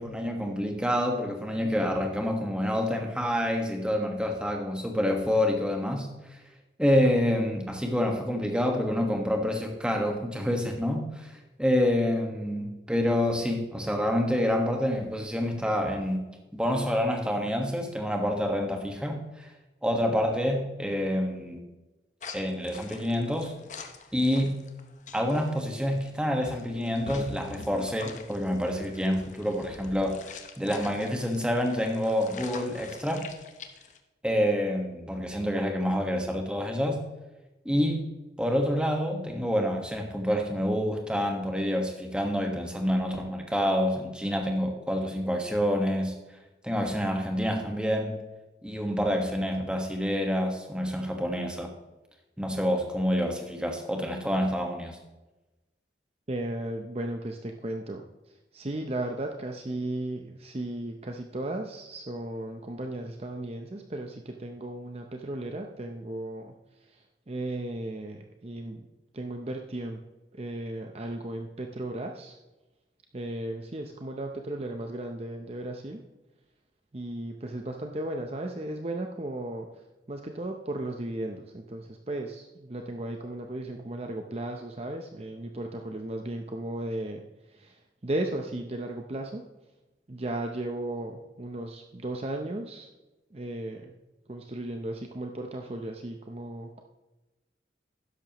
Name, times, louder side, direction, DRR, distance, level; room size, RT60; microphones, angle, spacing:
voice 1, 0.0-6.4 6.8-16.2 16.5-19.5 19.8-21.6 22.3-23.6 24.1-24.6 25.1-33.3 34.2-37.0 37.6-38.1 38.4-46.2 46.6-48.2 48.6-51.7 52.4-55.0, equal, 5° right, 2 dB, 1.4 m, -27 dB
sound 1, 22.2-34.0, left 4 dB, 45° left, 0.9 m, -45 dB
voice 2, 56.3-58.0 58.5-66.5 66.9-68.9 69.1-70.0 70.3-72.4 73.1-76.0 76.9-79.7 80.1-87.2 87.5-89.4 90.1-92.9 93.3-93.9 94.3-96.8, right 1 dB, 35° right, 3 dB, 0.7 m, -35 dB
12.5 x 10.0 x 3.0 m, 1.1 s
head